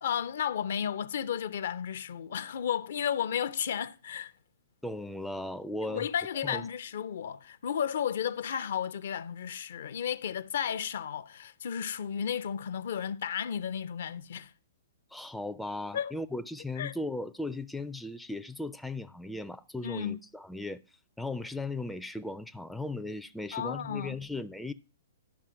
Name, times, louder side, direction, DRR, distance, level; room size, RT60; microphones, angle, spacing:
voice 1, 0.0-4.3 5.8-14.5 15.9-16.1 16.8-16.9 19.8-20.2 23.5-24.2, left 8 dB, 60° left, 0.5 m, -33 dB
voice 2, 4.8-6.1 6.4-6.6 15.1-20.8 21.2-24.7, left 2 dB, ahead, 0.4 m, -37 dB
11.5 x 5.5 x 4.9 m
figure-of-eight pair, 115°, 0 cm